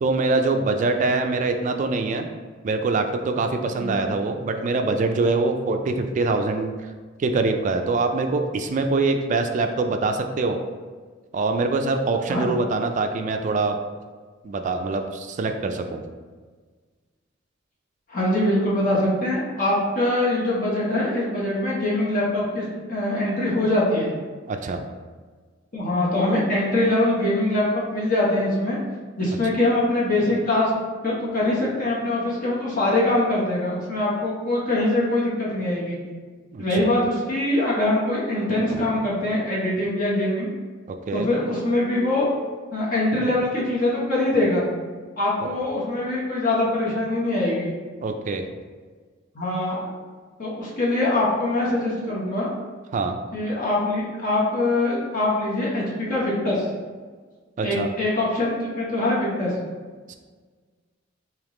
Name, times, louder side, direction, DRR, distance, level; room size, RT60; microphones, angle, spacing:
voice 1, 0.0-2.3 2.6-6.7 7.2-10.6 11.3-13.8 14.4-16.0 24.5-24.8 36.5-36.9 41.1-41.3 48.0-48.4 52.9-53.2 57.6-57.9 60.1-60.2, right 3 dB, 40° right, 6 dB, 0.3 m, -24 dB
voice 2, 18.1-24.1 25.7-28.8 29.2-30.7 31.0-36.0 36.6-40.5 41.1-42.3 42.7-44.7 45.2-47.7 49.3-49.8 50.4-52.5 53.3-56.6 57.6-59.5, left 1 dB, 45° left, -6 dB, 0.9 m, -23 dB
3.5 x 2.9 x 3.7 m, 1.5 s
head